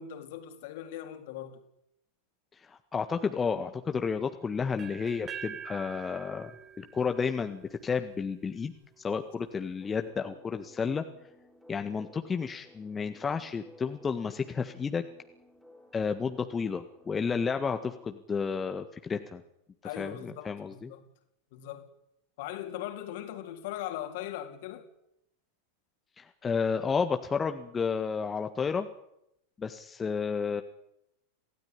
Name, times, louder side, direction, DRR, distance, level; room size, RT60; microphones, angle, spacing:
voice 1, 0.0-1.6 19.8-21.0 21.5-21.9 22.4-24.9, left 11 dB, 50° left, 3.8 m, -39 dB
voice 2, 2.6-6.5 6.8-11.0 11.7-15.0 15.9-19.4 20.0-20.9 26.2-28.9 29.6-30.6, left 5 dB, 15° left, 1.7 m, -31 dB
sound 1, 4.8-8.7, right 8 dB, 25° right, 3.2 m, -45 dB
sound 2, 9.8-18.1, left 1 dB, ahead, 4.2 m, -57 dB
27.5 x 17.0 x 9.9 m
figure-of-eight pair, 90°, 0 cm